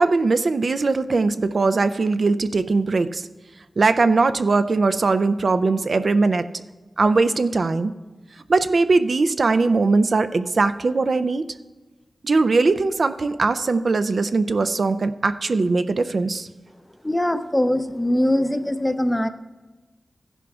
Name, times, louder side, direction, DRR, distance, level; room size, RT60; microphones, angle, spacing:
voice 1, 0.0-3.2 3.8-6.4 7.0-7.9 8.5-11.4 12.2-16.5, right 3 dB, 60° right, 11 dB, 0.4 m, -20 dB
voice 2, 17.0-19.3, left 1 dB, 10° left, 9 dB, 0.5 m, -22 dB
14.5 x 11.0 x 2.4 m, 1.2 s
wide cardioid pair, 95°, 0 cm